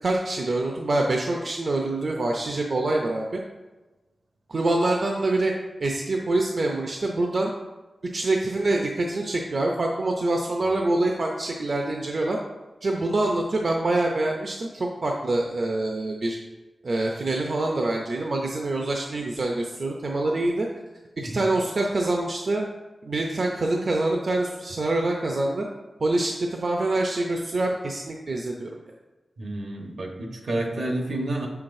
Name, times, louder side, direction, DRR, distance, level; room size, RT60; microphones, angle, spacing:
voice 1, 0.0-3.4 4.5-5.5 5.8-7.5 8.1-12.4 12.8-16.4 16.8-20.7 21.2-22.7 23.0-25.6 26.0-28.7, right 2 dB, 60° right, 1 dB, 0.6 m, -25 dB
voice 2, 29.4-31.5, right 1 dB, 85° right, 1 dB, 1.1 m, -30 dB
6.7 x 5.8 x 2.6 m, 1.1 s
wide cardioid pair, 80°, 0 cm